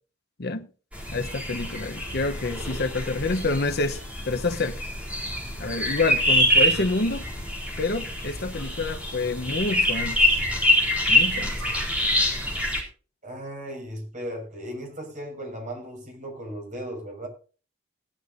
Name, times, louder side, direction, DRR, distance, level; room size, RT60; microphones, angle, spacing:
sound 1, 0.9-12.8, left 1 dB, 5° right, 4.3 m, -25 dB
voice 1, 1.1-4.8 5.6-7.3 7.8-10.3 11.1-11.6, left 3 dB, 55° left, 1.0 m, -28 dB
voice 2, 13.2-17.3, equal, 40° right, 6.0 m, -36 dB
18.0 x 12.0 x 2.7 m
head